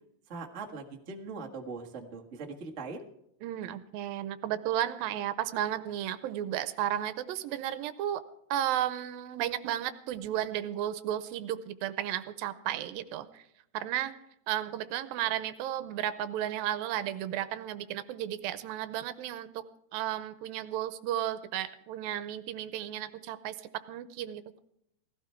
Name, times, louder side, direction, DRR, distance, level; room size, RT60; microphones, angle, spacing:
voice 1, 0.3-3.0, right 4 dB, 40° right, 1 dB, 1.0 m, -41 dB
voice 2, 3.4-8.2 8.5-13.5 13.7-14.2 14.5-19.7 19.9-24.6, right 11 dB, 80° right, 13 dB, 2.4 m, -33 dB
17.5 x 16.0 x 4.5 m, 0.77 s
omnidirectional pair, 4.2 m